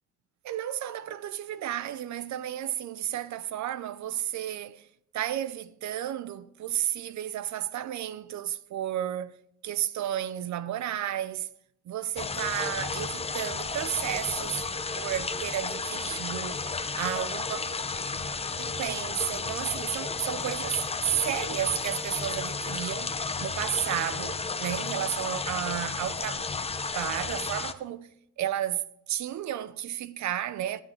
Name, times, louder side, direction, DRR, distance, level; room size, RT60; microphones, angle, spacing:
voice 1, 0.4-4.9 5.1-9.4 9.6-11.5 11.9-14.7 14.9-16.6 17.0-17.7 18.6-23.1 23.4-26.4 26.9-28.1 28.4-30.8, right 11 dB, 70° right, 0.7 m, -32 dB
sound 1, 12.2-27.7, left 4 dB, 20° left, 0.7 m, -33 dB
13.0 x 9.5 x 3.6 m
cardioid pair, 90°, 30 cm